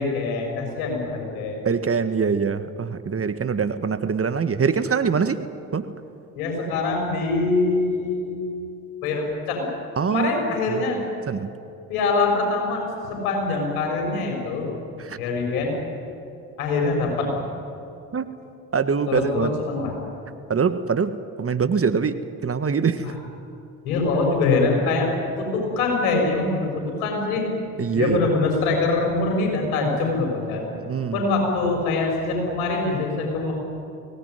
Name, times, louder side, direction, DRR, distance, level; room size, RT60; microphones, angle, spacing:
voice 1, 0.0-1.7 6.3-8.4 9.0-9.7 10.0-11.0 11.9-14.7 15.2-15.8 16.6-17.3 19.1-19.9 23.0-23.1 23.8-25.1 25.4-27.4 27.9-30.7 31.1-33.5, left 3 dB, 80° left, 1 dB, 6.8 m, -24 dB
voice 2, 1.6-5.4 5.7-5.9 10.0-10.8 11.3-11.5 15.0-15.2 18.1-18.3 18.7-19.5 20.5-21.1 21.4-22.2 22.4-23.0 27.8-28.2 30.8-31.2, right 6 dB, 30° right, 10 dB, 1.5 m, -23 dB
24.0 x 18.5 x 9.7 m, 2.6 s
hypercardioid pair, 50°, 43 cm